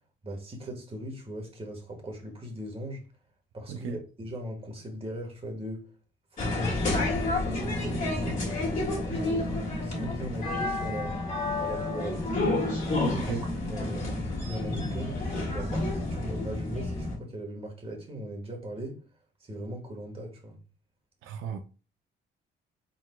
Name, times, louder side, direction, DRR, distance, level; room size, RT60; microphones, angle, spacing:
voice 1, 0.2-3.0 3.5-5.9 6.3-8.7 9.1-11.2 11.6-12.5 13.2-19.0 19.4-20.6, equal, 30° right, 1.4 m, -39 dB
voice 2, 3.7-4.0 13.1-13.4 21.2-21.7, right 7 dB, 80° right, 0.5 m, -35 dB
sound 1, 6.4-17.2, left 2 dB, 40° left, 1.9 m, -30 dB
4.4 x 4.1 x 2.2 m
cardioid pair, 90°, 20 cm